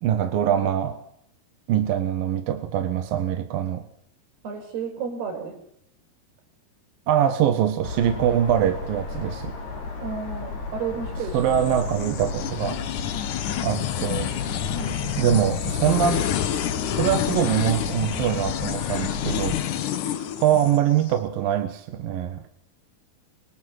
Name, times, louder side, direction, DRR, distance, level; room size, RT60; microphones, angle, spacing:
voice 1, 0.0-1.0 1.7-3.8 7.1-9.6 11.3-12.8 13.6-14.3 15.2-16.5 16.9-19.6 20.2-22.4, right 10 dB, 70° right, 8 dB, 3.0 m, -23 dB
voice 2, 4.4-5.6 10.0-11.7 14.8-15.3, right 5 dB, 85° right, 5 dB, 7.2 m, -33 dB
sound 1, 7.8-19.6, left 3 dB, 85° left, 7.8 m, -34 dB
sound 2, 11.4-21.1, left 11 dB, 65° left, 2.5 m, -29 dB
25.5 x 25.0 x 8.0 m, 0.72 s
omnidirectional pair, 4.5 m